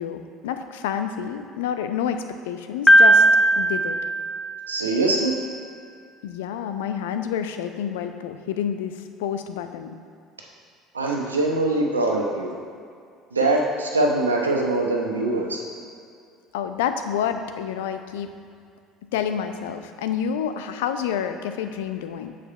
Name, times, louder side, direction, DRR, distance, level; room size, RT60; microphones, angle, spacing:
voice 1, 0.0-3.3 3.6-4.0 6.2-10.0 16.5-18.3 19.1-22.3, left 8 dB, 75° left, 8 dB, 0.4 m, -28 dB
Piano, 2.9-5.0, right 1 dB, 5° left, 0.4 m, -17 dB
voice 2, 4.7-5.3 10.9-12.5 13.3-15.6, right 2 dB, 90° right, 0 dB, 0.8 m, -23 dB
6.6 x 5.0 x 5.4 m, 2.3 s
figure-of-eight pair, 60°, 0 cm